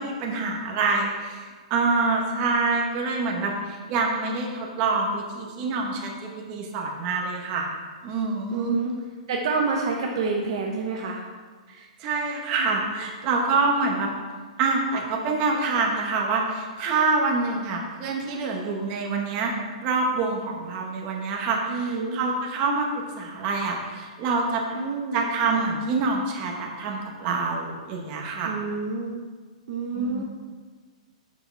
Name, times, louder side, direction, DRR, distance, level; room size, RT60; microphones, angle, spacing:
voice 1, 0.0-7.7 8.0-8.8 11.7-14.1 14.6-19.5 19.8-22.9 23.2-24.8 25.1-28.6 29.9-30.2, right 3 dB, 25° right, 0 dB, 1.0 m, -26 dB
voice 2, 8.5-9.0 9.3-11.2 21.7-22.2 24.7-25.2 28.4-29.2 29.7-30.2, right 4 dB, 40° right, 0 dB, 0.7 m, -28 dB
7.8 x 6.3 x 4.5 m, 1.5 s
hypercardioid pair, 180°, 4 cm